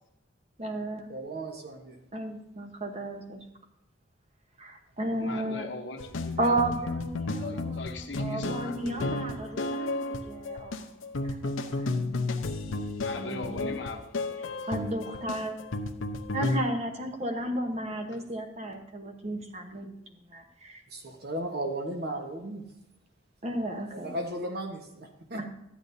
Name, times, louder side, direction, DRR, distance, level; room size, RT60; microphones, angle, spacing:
voice 1, 0.6-1.1 2.1-3.4 4.6-5.7 6.4-10.9 11.1-11.9 13.2-13.8 14.7-15.6 16.3-20.0 20.3-20.8 23.4-24.2 25.4-25.5, right 1 dB, 30° right, 3 dB, 1.0 m, -33 dB
voice 2, 1.1-2.0 20.9-22.6 23.9-25.4, right 1 dB, 50° right, 3 dB, 1.2 m, -36 dB
voice 3, 5.2-6.5 7.4-8.8 13.0-14.1, left 3 dB, 60° left, 5 dB, 1.0 m, -40 dB
sound 1, 6.0-16.6, left 2 dB, 75° left, 0.7 m, -33 dB
12.5 x 9.3 x 2.7 m, 0.87 s
head